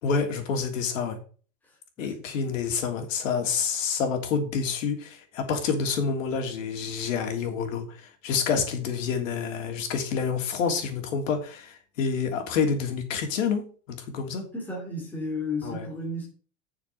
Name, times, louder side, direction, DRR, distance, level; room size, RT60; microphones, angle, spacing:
voice 1, 0.0-1.2 2.0-14.4 15.6-15.8, left 6 dB, 80° left, 3.1 m, -28 dB
voice 2, 2.0-2.6 14.5-16.3, left 2 dB, 5° left, 2.9 m, -34 dB
7.1 x 6.3 x 7.5 m
supercardioid pair, 170°, 39 cm